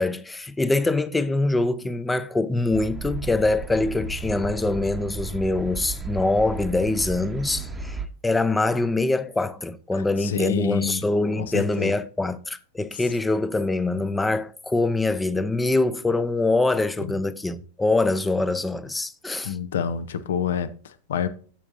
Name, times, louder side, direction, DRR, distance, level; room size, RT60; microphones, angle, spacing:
voice 1, 0.0-19.6, left 2 dB, 10° left, 0.6 m, -24 dB
sound 1, 2.7-8.1, right 4 dB, 20° right, 0.9 m, -34 dB
voice 2, 10.2-11.0 11.4-11.9 17.0-17.1 19.4-21.3, left 8 dB, 60° left, 0.8 m, -27 dB
13.0 x 5.9 x 2.7 m
figure-of-eight pair, 90°, 0 cm